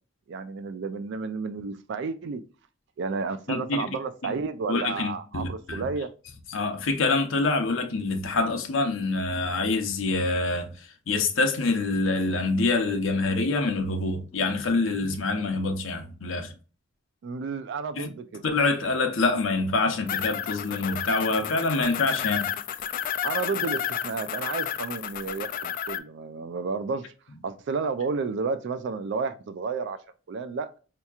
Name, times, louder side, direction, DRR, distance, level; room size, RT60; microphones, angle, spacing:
voice 1, 0.3-2.4 3.0-6.1 17.2-18.4 23.2-27.0 27.4-30.0 30.3-30.7, right 4 dB, 60° right, 0.3 m, -31 dB
voice 2, 3.5-3.9 4.7-5.9 6.5-10.7 11.1-16.5 18.0-18.1 18.4-22.5, left 3 dB, 75° left, 0.7 m, -26 dB
sound 1, 20.1-26.0, left 9 dB, 45° left, 0.3 m, -31 dB
4.4 x 2.9 x 2.3 m
head